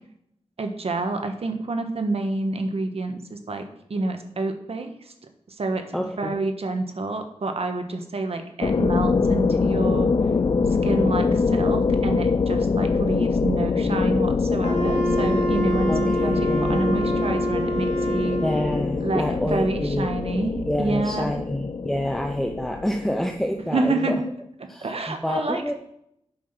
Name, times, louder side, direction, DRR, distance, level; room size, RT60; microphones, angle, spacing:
voice 1, 0.6-4.9 5.6-10.1 10.8-18.4 19.0-21.3 23.7-24.1 24.6-25.7, right 2 dB, 65° right, 6 dB, 1.3 m, -28 dB
voice 2, 5.9-6.4 15.9-16.8 18.4-20.1 20.7-24.2 24.7-25.7, equal, ahead, 4 dB, 0.7 m, -27 dB
sound 1, 8.6-23.7, left 4 dB, 45° left, 0.4 m, -24 dB
Wind instrument woodwind instrument, 14.6-18.9, right 1 dB, 80° left, 2.6 m, -27 dB
8.5 x 5.8 x 5.8 m, 0.74 s
cardioid pair, 65°, 11 cm